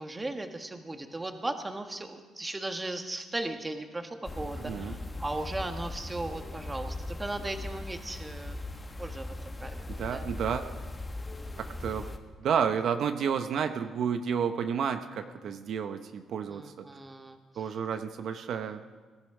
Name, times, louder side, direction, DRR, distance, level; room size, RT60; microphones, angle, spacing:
voice 1, 0.0-8.7 9.0-9.3 9.6-9.8 10.1-10.2 16.5-17.4, right 2 dB, 20° right, 6 dB, 1.5 m, -37 dB
sound 1, 4.2-12.2, left 2 dB, 25° left, 1.4 m, -39 dB
voice 2, 4.6-5.0 9.9-10.7 11.6-12.1 12.4-16.8 17.6-18.8, right 7 dB, 70° right, 8 dB, 0.8 m, -31 dB
20.0 x 12.5 x 4.9 m, 1.4 s
cardioid pair, 90°, 0 cm